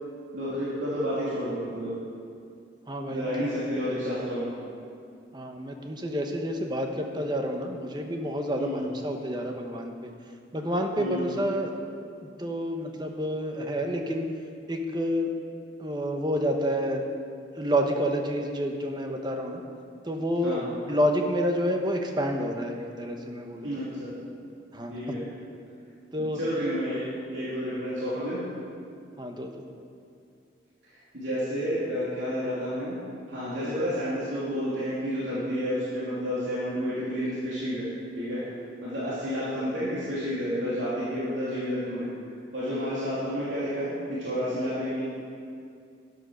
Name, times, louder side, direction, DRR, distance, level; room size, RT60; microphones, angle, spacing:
voice 1, 0.3-1.9 3.1-4.5 8.6-8.9 11.0-11.3 20.4-20.7 23.6-24.1 24.9-25.3 26.2-27.0 27.3-28.5 30.9-33.0 33.3-37.9 38.2-38.4 38.8-42.1 42.5-45.0, equal, 80° right, -10 dB, 2.9 m, -30 dB
voice 2, 2.9-3.3 5.3-10.1 10.5-11.7 12.2-14.3 14.7-15.3 15.8-17.1 17.6-19.6 20.0-23.7 24.7-25.0 26.1-26.4 29.2-29.6, equal, 25° right, 3 dB, 1.0 m, -29 dB
12.0 x 9.4 x 6.3 m, 2.4 s
head